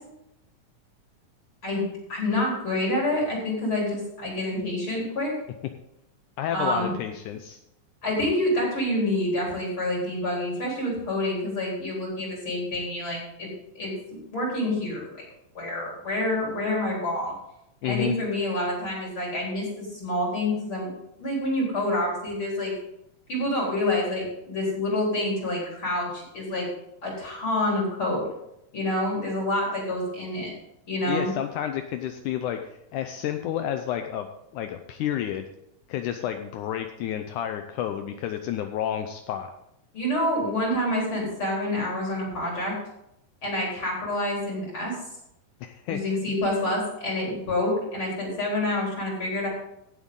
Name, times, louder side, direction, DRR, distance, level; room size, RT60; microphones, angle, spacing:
voice 1, 2.1-5.3 6.5-6.9 8.0-13.5 13.7-15.2 15.5-17.4 17.8-20.9 21.2-22.7 23.3-26.7 27.0-28.3 28.7-30.5 30.9-31.3 39.9-42.7 43.4-45.0 45.9-49.5, left 1 dB, 40° left, -3 dB, 4.7 m, -27 dB
voice 2, 6.4-7.6 17.8-18.2 31.1-34.3 34.5-35.5 35.9-39.5 45.6-46.2, left 10 dB, 75° left, 7 dB, 2.0 m, -30 dB
16.5 x 7.6 x 3.8 m, 0.82 s
omnidirectional pair, 3.8 m